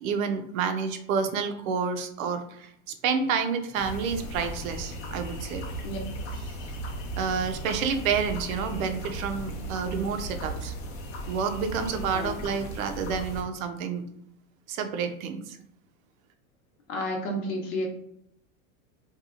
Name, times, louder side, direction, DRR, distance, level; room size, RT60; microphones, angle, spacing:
voice 1, 0.0-5.6 7.2-10.7 11.3-14.0 14.7-15.6, right 6 dB, 80° right, 7 dB, 0.6 m, -29 dB
sound 1, 3.7-13.4, right 1 dB, 35° left, 0.5 m, -36 dB
voice 2, 12.1-12.4 16.9-17.9, left 1 dB, 90° left, 0 dB, 0.9 m, -31 dB
2.8 x 2.3 x 2.5 m, 0.71 s
supercardioid pair, 135°, 41 cm